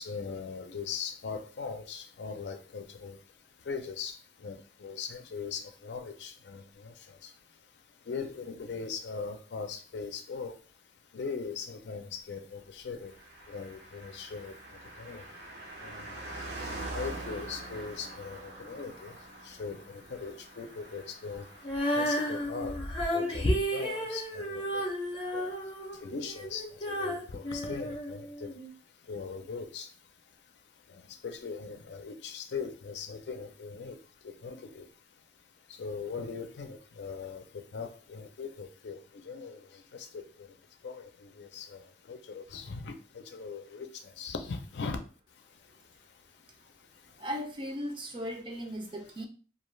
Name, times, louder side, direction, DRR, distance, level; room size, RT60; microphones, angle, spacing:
voice 1, 0.0-3.2 3.7-7.3 8.1-10.5 11.1-13.1 13.5-14.6 15.0-15.3 15.8-16.3 16.9-19.1 19.4-21.5 21.9-22.8 23.1-24.8 25.3-25.5 26.0-28.5 29.1-29.9 30.9-34.0 34.2-34.9 35.7-40.5 40.8-45.0, left 5 dB, 80° left, 6 dB, 0.5 m, -40 dB
Car passing by, 13.0-24.9 25.1-25.2, right 2 dB, 65° right, 0.7 m, -45 dB
Female singing, 21.6-28.7, equal, 30° left, 0.6 m, -32 dB
voice 2, 47.2-49.3, equal, 30° right, 3 dB, 0.4 m, -37 dB
2.3 x 2.3 x 3.1 m, 0.37 s
head